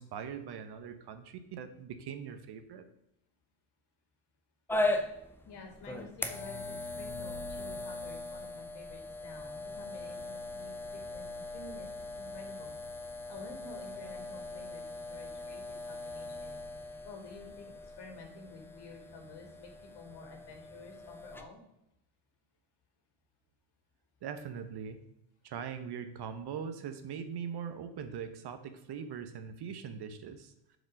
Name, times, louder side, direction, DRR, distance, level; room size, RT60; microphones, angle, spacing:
voice 1, 0.0-2.9 24.2-25.0 25.4-30.5, right 7 dB, 50° right, 9 dB, 1.0 m, -41 dB
sound 1, 4.7-21.4, left 2 dB, 5° left, 0.3 m, -39 dB
voice 2, 5.4-12.8 13.3-16.6 17.0-21.6, left 3 dB, 55° left, 3 dB, 2.4 m, -50 dB
7.4 x 5.3 x 6.3 m, 0.82 s
cardioid pair, 160°, 50 cm